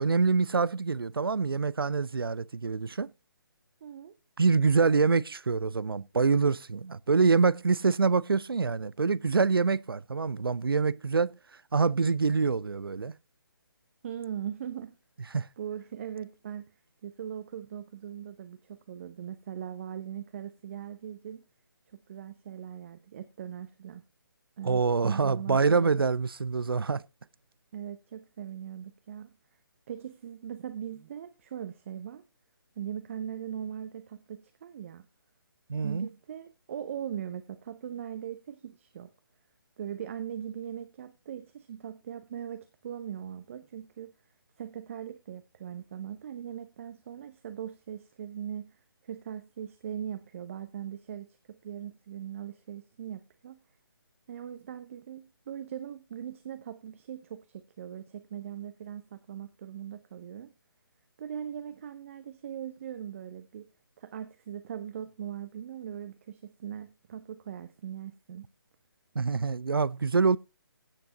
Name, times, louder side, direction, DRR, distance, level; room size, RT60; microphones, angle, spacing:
voice 1, 0.0-3.1 4.4-11.3 11.7-13.1 15.3-15.5 24.6-27.0 35.7-36.1 69.2-70.4, right 4 dB, 75° right, 0.5 m, -25 dB
voice 2, 3.8-4.1 14.0-14.9 15.6-16.7 17.0-21.4 22.1-24.0 24.6-25.9 27.7-29.3 29.9-32.2 32.8-35.1 35.8-39.1 39.8-44.1 44.6-48.8 49.0-53.6 54.3-60.5 61.2-63.7 64.0-68.4, right 9 dB, 35° right, 0.9 m, -40 dB
16.0 x 5.7 x 4.0 m
figure-of-eight pair, 145°, 12 cm